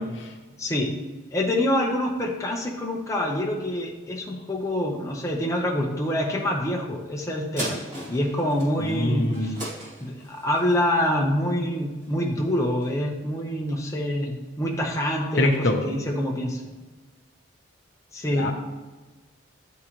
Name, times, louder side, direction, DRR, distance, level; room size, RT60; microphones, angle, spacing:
voice 1, 0.6-0.9 1.3-7.8 8.1-9.6 10.0-16.6 18.1-18.5, left 1 dB, 15° left, -1 dB, 0.6 m, -26 dB
sound 1, 7.6-12.3 12.8-12.9, right 1 dB, 40° right, 2.2 m, -37 dB
voice 2, 8.8-9.6 15.3-15.8 18.3-18.5, left 1 dB, 60° left, 3 dB, 0.8 m, -24 dB
10.0 x 3.7 x 3.0 m, 1.2 s
head